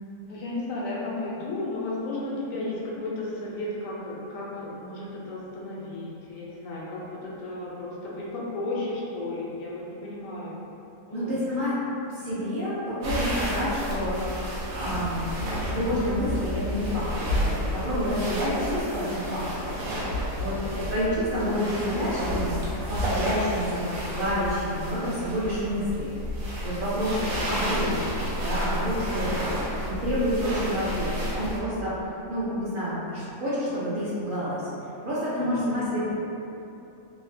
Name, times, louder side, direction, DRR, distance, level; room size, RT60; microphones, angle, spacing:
voice 1, 0.2-10.6 11.0-11.4 20.2-20.7 26.8-27.1 28.6-29.0 35.4-35.6, left 2 dB, 85° left, -5 dB, 1.0 m, -34 dB
voice 2, 11.1-11.7 12.1-14.2 14.8-15.2 15.7-17.4 17.7-19.8 20.4-22.6 22.9-28.1 28.4-31.9 32.3-34.6 35.0-36.1, equal, 60° right, -11 dB, 0.5 m, -28 dB
sound 1, 13.0-31.6, equal, 85° right, 1.0 m, -31 dB
3.1 x 2.1 x 2.6 m, 2.8 s
omnidirectional pair, 1.4 m